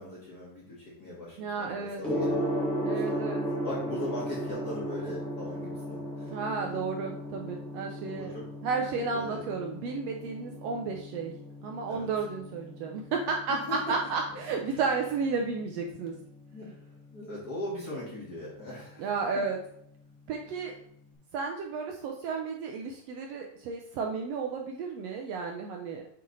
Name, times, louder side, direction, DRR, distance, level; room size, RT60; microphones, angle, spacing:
voice 1, 0.0-2.5 2.9-6.3 8.0-8.5 9.1-9.5 11.8-12.1 13.5-13.8 14.7-14.8 16.5-16.7 17.1-19.1, left 1 dB, 40° left, -5 dB, 1.5 m, -40 dB
voice 2, 1.4-2.0 2.8-3.4 6.3-8.3 8.6-11.3 11.6-13.6 13.9-16.1 19.0-19.6 20.3-20.7 21.3-26.0, right 4 dB, 80° right, 2 dB, 1.4 m, -32 dB
Gong, 2.0-21.0, equal, ahead, 1.3 m, -37 dB
8.0 x 3.1 x 4.0 m, 0.70 s
omnidirectional pair, 3.5 m